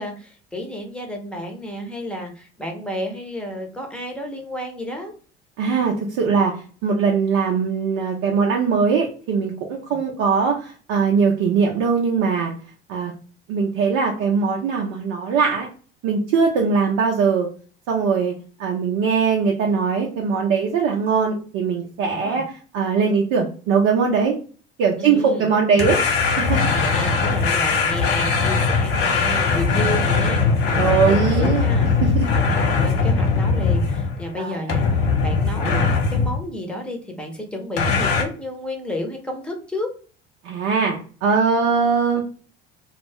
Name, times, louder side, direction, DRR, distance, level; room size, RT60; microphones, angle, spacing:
voice 1, 0.0-5.2 9.9-10.0 22.1-22.4 25.0-25.9 26.7-31.9 32.3-39.9, left 1 dB, 5° left, 1 dB, 0.8 m, -31 dB
voice 2, 5.6-6.5 6.8-12.5 12.9-13.1 13.5-15.7 16.0-17.5 17.9-18.3 18.6-24.4 24.8-26.0 26.4-26.7 30.8-31.7 32.0-32.3 34.4-34.8 40.4-42.2, right 5 dB, 55° right, 0 dB, 0.6 m, -21 dB
sound 1, 25.8-34.3 34.7-36.4 37.8-38.2, left 4 dB, 50° left, 0.8 m, -20 dB
2.3 x 2.0 x 3.3 m, 0.41 s
hypercardioid pair, 65°, 29 cm